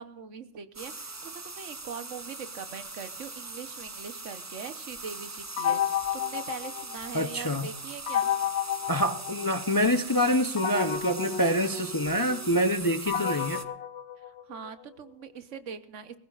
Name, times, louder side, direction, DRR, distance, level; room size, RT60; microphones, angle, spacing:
voice 1, 0.0-5.8 6.1-8.3 14.3-16.2, right 6 dB, 70° right, 11 dB, 1.3 m, -42 dB
sound 1, 0.7-13.6, right 3 dB, 25° right, 0.4 m, -41 dB
sound 2, 5.6-7.4 8.1-9.9 10.6-14.8, left 9 dB, 65° left, 1.1 m, -32 dB
voice 2, 7.1-7.7 8.9-13.6, equal, 20° left, 8 dB, 0.6 m, -26 dB
22.5 x 15.5 x 2.4 m, 0.66 s
omnidirectional pair, 1.3 m